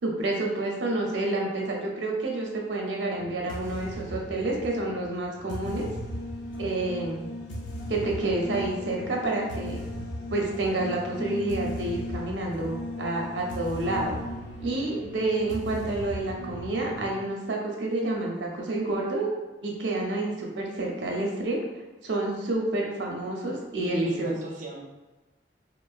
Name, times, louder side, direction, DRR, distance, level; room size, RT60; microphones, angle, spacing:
voice 1, 0.0-5.9 6.6-7.2 7.9-9.9 10.3-14.1 14.6-19.3 19.6-21.6 22.0-24.3, right 2 dB, 85° right, 0 dB, 0.6 m, -29 dB
sound 1, 3.2-17.0, equal, 85° left, 0.5 m, -37 dB
voice 2, 23.8-24.8, right 1 dB, 45° right, -1 dB, 0.5 m, -36 dB
3.7 x 2.0 x 2.4 m, 1.1 s
head